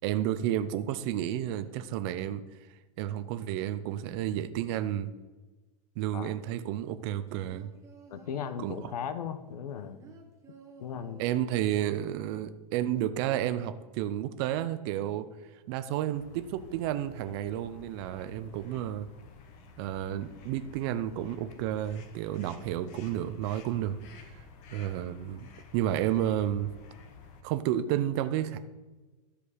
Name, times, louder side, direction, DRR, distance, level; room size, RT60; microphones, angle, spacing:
voice 1, 0.0-2.4 3.0-5.1 6.0-7.7 8.6-8.8 11.2-15.3 15.7-19.1 19.8-24.0 24.7-25.5 25.7-26.7 27.4-28.6, right 11 dB, 40° right, 11 dB, 0.6 m, -31 dB
sound 1, 6.9-8.8 9.4-11.8 12.1-12.2, right 5 dB, 15° right, 1.2 m, -54 dB
voice 2, 8.1-10.0 10.5-11.2, left 8 dB, 70° left, 11 dB, 1.0 m, -37 dB
sound 2, 16.1-27.4, left 4 dB, 35° left, 1.2 m, -52 dB
12.5 x 5.1 x 5.0 m, 1.2 s
hypercardioid pair, 140°, 20 cm